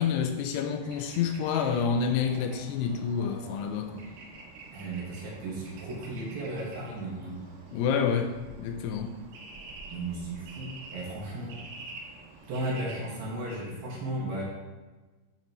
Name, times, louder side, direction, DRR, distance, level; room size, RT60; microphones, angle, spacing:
voice 1, 0.0-4.0 7.7-9.2, left 6 dB, 85° left, 6 dB, 2.6 m, -28 dB
Bird / Traffic noise roadway noise, 0.8-13.5, right 3 dB, 80° right, 3.5 m, -48 dB
voice 2, 4.7-7.4 9.9-11.6 12.5-14.4, right 1 dB, 60° right, -4 dB, 3.3 m, -35 dB
11.5 x 6.5 x 3.0 m, 1.2 s
omnidirectional pair, 4.9 m